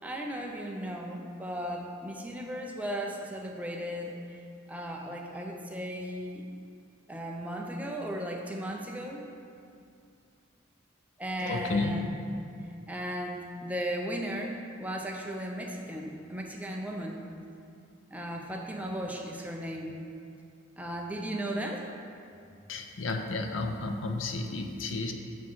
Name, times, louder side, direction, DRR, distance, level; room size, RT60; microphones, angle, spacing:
voice 1, 0.0-4.2 4.7-6.5 7.1-9.3 11.2-12.2 12.9-17.3 18.1-20.0 20.8-21.9, equal, 10° right, 0 dB, 0.6 m, -36 dB
voice 2, 11.4-12.0 22.7-25.1, left 3 dB, 85° left, 5 dB, 0.6 m, -32 dB
9.3 x 3.2 x 6.2 m, 2.4 s
head